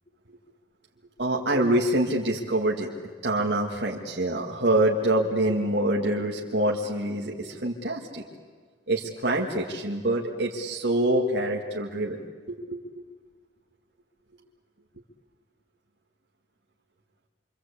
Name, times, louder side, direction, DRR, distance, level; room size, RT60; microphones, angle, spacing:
voice 1, 1.2-2.9 3.2-8.2 8.9-12.2 12.5-12.8, right 1 dB, 65° right, -2 dB, 2.2 m, -25 dB
27.0 x 25.5 x 8.5 m, 1.5 s
head